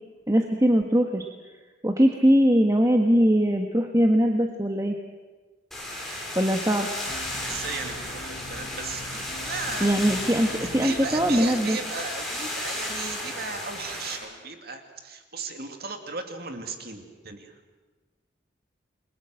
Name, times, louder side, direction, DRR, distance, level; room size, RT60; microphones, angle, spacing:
voice 1, 0.3-1.3 1.8-4.9 6.3-6.9 9.8-11.8, equal, 20° right, 3 dB, 1.5 m, -21 dB
sound 1, 5.7-14.1, left 1 dB, ahead, 6.7 m, -34 dB
sound 2, 7.1-11.5, left 2 dB, 50° left, 2.6 m, -42 dB
voice 2, 7.4-9.9 10.6-17.5, right 4 dB, 55° right, 5 dB, 2.6 m, -36 dB
29.5 x 22.5 x 7.8 m, 1.3 s
head